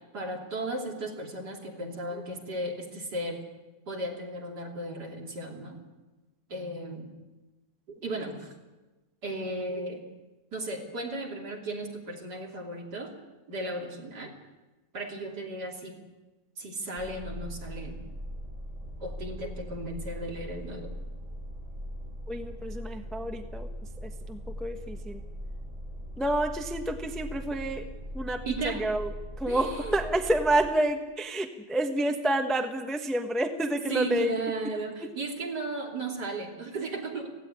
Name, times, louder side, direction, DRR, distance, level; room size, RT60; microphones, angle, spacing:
voice 1, 0.1-3.4 3.9-5.8 6.5-7.1 8.0-8.5 9.2-10.0 10.5-13.1 13.5-14.3 14.9-16.0 16.6-18.0 19.0-20.9 28.4-28.8 29.5-29.9 33.9-37.3, right 2 dB, 55° right, 1 dB, 3.6 m, -35 dB
sound 1, 17.0-30.7, equal, 15° right, 3.1 m, -40 dB
voice 2, 22.3-23.7 24.0-25.2 26.2-27.9 28.1-34.3 35.0-35.1, right 1 dB, ahead, 5 dB, 0.9 m, -29 dB
17.0 x 16.5 x 9.7 m, 1.1 s
omnidirectional pair, 2.2 m